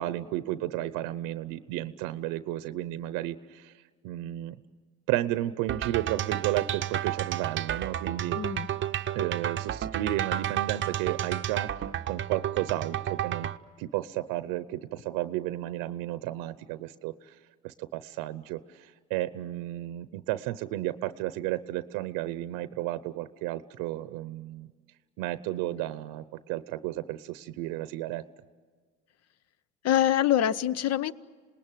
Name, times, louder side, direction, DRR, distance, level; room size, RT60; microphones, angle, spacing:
voice 1, 0.0-4.6 5.1-8.4 9.1-13.5 13.8-17.4 17.6-24.7 25.2-28.2, right 15 dB, 85° right, 14 dB, 0.8 m, -33 dB
sound 1, 5.7-13.6, right 11 dB, 35° right, 0.7 m, -31 dB
voice 2, 8.4-8.7 29.8-31.1, left 11 dB, 50° left, 17 dB, 0.8 m, -24 dB
27.0 x 20.0 x 9.1 m, 1.5 s
cardioid pair, 105°, 32 cm